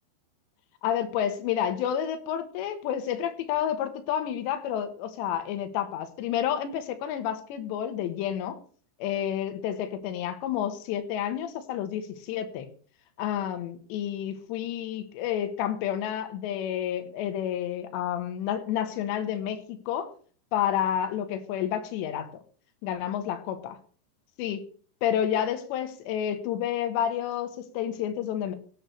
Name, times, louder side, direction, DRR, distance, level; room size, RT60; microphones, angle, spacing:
voice 1, 0.8-8.6 9.0-12.7 13.2-20.1 20.5-22.4 22.8-23.8 24.4-24.6 25.0-28.6, left 10 dB, 80° left, 8 dB, 3.2 m, -30 dB
17.0 x 7.8 x 3.2 m, 0.43 s
omnidirectional pair, 5.1 m